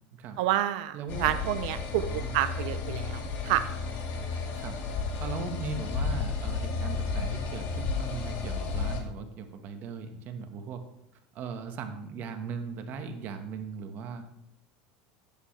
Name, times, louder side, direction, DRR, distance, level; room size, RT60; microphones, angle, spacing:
voice 1, 0.4-2.1 2.3-3.6, right 13 dB, 75° right, 12 dB, 0.6 m, -29 dB
voice 2, 0.9-1.3 2.0-2.4 4.5-4.8 5.2-10.8 11.3-14.2, right 5 dB, 50° right, 6 dB, 1.4 m, -38 dB
sound 1, 1.1-9.0, left 4 dB, 55° left, 2.1 m, -32 dB
11.0 x 8.7 x 3.3 m, 0.78 s
supercardioid pair, 120°, 4 cm